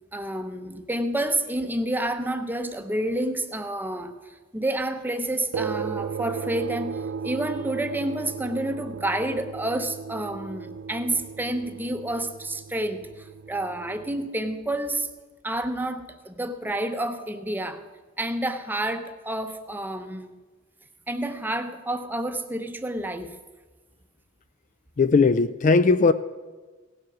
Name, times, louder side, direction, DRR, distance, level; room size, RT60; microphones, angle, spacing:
voice 1, 0.1-15.1 15.4-17.8 18.2-20.3 21.1-23.4, right 1 dB, 10° right, 0.7 m, -29 dB
sound 1, 5.5-14.3, right 6 dB, 70° right, 0.4 m, -35 dB
voice 2, 25.0-26.1, left 4 dB, 40° left, 0.4 m, -18 dB
17.0 x 7.8 x 6.1 m
head